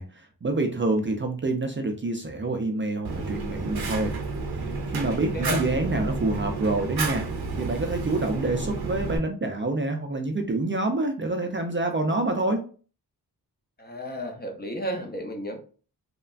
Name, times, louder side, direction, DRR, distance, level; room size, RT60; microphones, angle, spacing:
voice 1, 0.0-4.1 4.5-7.2 7.6-12.6, right 2 dB, 30° right, 0.4 m, -27 dB
Fire, 3.0-9.2, right 3 dB, 75° right, 0.7 m, -31 dB
voice 2, 13.8-15.6, equal, 25° left, 0.6 m, -32 dB
3.2 x 2.1 x 2.4 m
wide cardioid pair, 75°, 38 cm